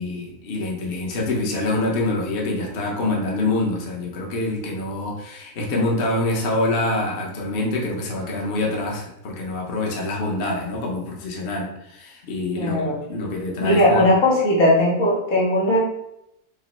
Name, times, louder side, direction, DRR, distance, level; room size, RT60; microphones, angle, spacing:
voice 1, 0.0-14.1, left 2 dB, 50° left, -1 dB, 0.9 m, -26 dB
voice 2, 12.5-12.9 13.6-15.8, left 1 dB, 85° left, -7 dB, 1.9 m, -18 dB
5.1 x 2.0 x 4.1 m, 0.81 s
omnidirectional pair, 1.4 m